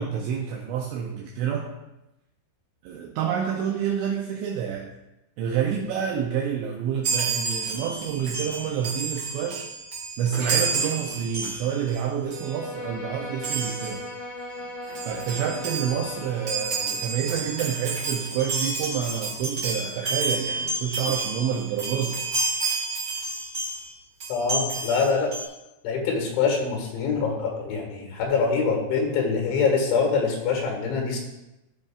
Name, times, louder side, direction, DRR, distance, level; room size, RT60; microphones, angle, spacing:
voice 1, 0.0-1.8 2.8-4.9 5.4-9.7 10.2-14.1 15.1-22.2, right 8 dB, 85° right, 0 dB, 2.6 m, -28 dB
Chime, 7.0-12.0 12.3-12.5 13.4-14.0 14.6-14.7 14.9-23.9 24.2-25.4, right 3 dB, 45° right, 1.5 m, -30 dB
Bowed string instrument, 12.2-17.2, left 2 dB, 50° left, 2.3 m, -38 dB
voice 2, 24.3-25.3 25.8-31.2, left 5 dB, 75° left, 1 dB, 3.7 m, -24 dB
14.0 x 5.3 x 2.4 m, 0.94 s
omnidirectional pair, 5.6 m